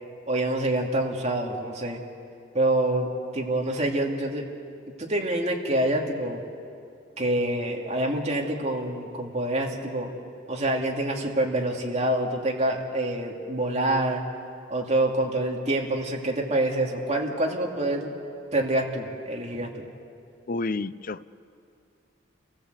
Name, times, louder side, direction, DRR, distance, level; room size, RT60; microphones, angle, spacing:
voice 1, 0.3-2.0 2.5-3.1 3.3-4.4 5.0-6.4 7.2-10.1 10.5-14.2 14.7-18.1 18.5-19.7, right 1 dB, 35° right, 0 dB, 2.7 m, -26 dB
voice 2, 20.5-21.3, left 3 dB, 45° left, 15 dB, 0.5 m, -30 dB
28.0 x 17.0 x 8.2 m, 2.5 s
head